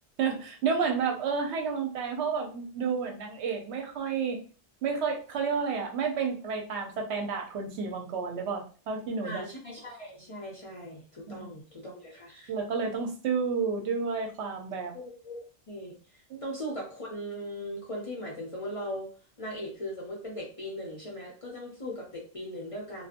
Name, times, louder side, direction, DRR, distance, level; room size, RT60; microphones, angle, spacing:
voice 1, 0.2-4.4 4.8-9.4 11.2-11.5 12.5-14.9 16.3-16.4, right 5 dB, 75° right, 2 dB, 0.9 m, -31 dB
voice 2, 9.2-12.5 14.9-16.0 16.4-19.1 19.4-23.1, equal, 40° left, -3 dB, 0.6 m, -39 dB
2.6 x 2.2 x 2.5 m, 0.37 s
omnidirectional pair, 1.2 m